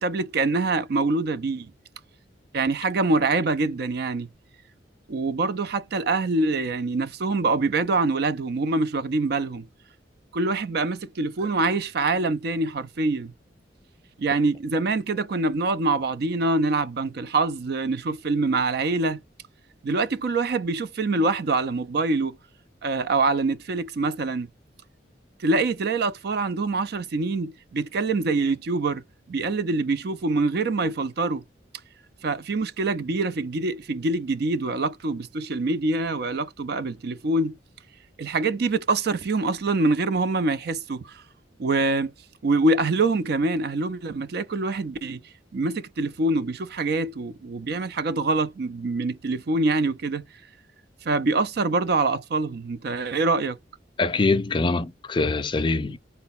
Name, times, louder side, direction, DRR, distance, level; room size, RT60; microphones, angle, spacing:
voice 1, 0.0-1.7 2.5-4.3 5.1-9.7 10.3-13.3 14.2-19.2 19.8-22.4 22.8-24.5 25.4-29.0 29.3-31.4 32.2-37.6 38.2-41.2 41.6-42.1 42.4-45.2 45.5-50.2 51.0-53.6, right 3 dB, 60° right, 0.5 m, -25 dB
voice 2, 54.0-56.0, left 3 dB, 25° left, 0.4 m, -23 dB
3.9 x 2.1 x 4.1 m
head